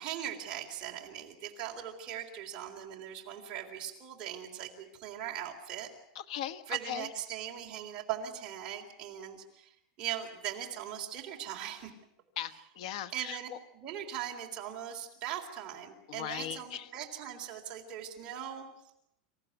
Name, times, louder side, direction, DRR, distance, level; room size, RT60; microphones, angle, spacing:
voice 1, 0.0-5.9 6.7-11.9 13.1-18.7, right 10 dB, 25° right, 0 dB, 3.8 m, -40 dB
voice 2, 6.1-7.1 12.4-13.6 16.1-16.9, left 11 dB, 60° left, 13 dB, 1.4 m, -39 dB
27.0 x 15.0 x 9.4 m, 0.79 s
supercardioid pair, 170°, 4 cm